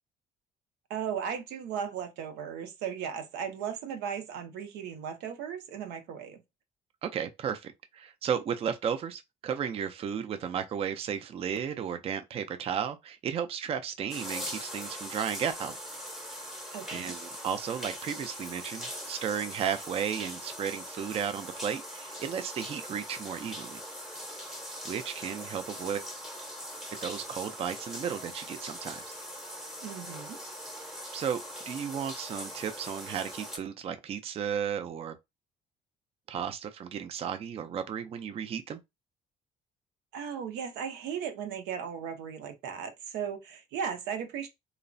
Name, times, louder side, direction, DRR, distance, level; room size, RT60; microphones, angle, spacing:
voice 1, 0.9-6.4 16.7-17.2 29.8-30.4 40.1-44.5, right 7 dB, 90° right, 0.6 m, -36 dB
voice 2, 7.0-15.8 16.9-23.8 24.8-26.0 27.0-29.2 31.1-35.1 36.3-38.8, right 8 dB, 35° right, 0.3 m, -34 dB
sound 1, 14.1-33.6, equal, ahead, 0.7 m, -41 dB
3.0 x 2.0 x 2.5 m
cardioid pair, 110°, 17 cm